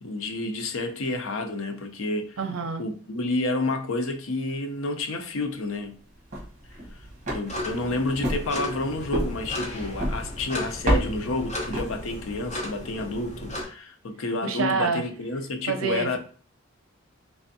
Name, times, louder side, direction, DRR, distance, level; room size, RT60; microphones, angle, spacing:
voice 1, 0.0-2.4 2.8-6.0 7.3-16.2, left 2 dB, 75° left, 0.6 m, -30 dB
voice 2, 2.4-2.8 14.4-15.0 15.6-16.2, right 5 dB, 70° right, 0.5 m, -27 dB
sound 1, 6.1-12.4, equal, 35° right, 1.1 m, -31 dB
sound 2, 7.4-13.6, left 1 dB, 35° left, 0.9 m, -36 dB
3.4 x 3.4 x 2.7 m
head